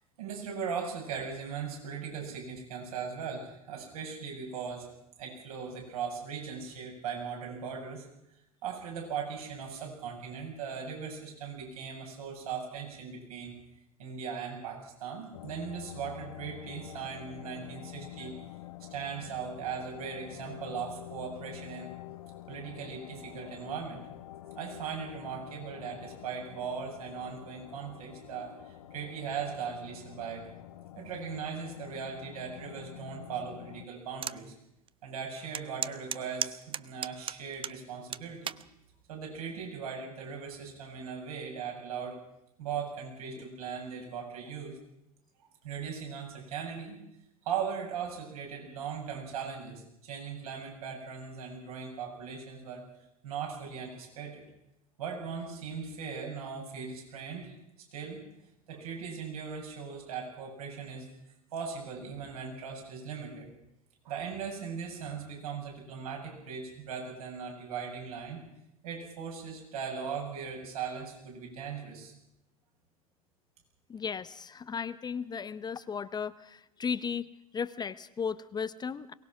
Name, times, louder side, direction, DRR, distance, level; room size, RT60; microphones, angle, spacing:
voice 1, 0.2-4.9 5.2-8.0 8.6-13.5 14.0-18.4 18.9-21.9 22.5-24.0 24.5-30.5 31.0-34.5 35.0-38.5 39.1-42.2 42.6-44.8 45.6-47.0 47.4-52.8 53.2-54.4 55.0-57.5 57.9-58.2 58.7-61.1 61.5-63.5 64.0-68.4 68.8-72.1, right 6 dB, 70° right, 0 dB, 7.5 m, -39 dB
sound 1, 15.3-33.9, left 13 dB, 70° left, 1.2 m, -47 dB
sound 2, 34.2-34.4 34.9-35.0 35.5-37.8 38.1-38.6 39.4-39.7, right 9 dB, 25° right, 0.7 m, -34 dB
voice 2, 73.9-77.3 77.5-79.1, left 6 dB, 20° left, 15 dB, 0.8 m, -35 dB
23.0 x 19.0 x 6.1 m, 0.84 s
figure-of-eight pair, 80°, 19 cm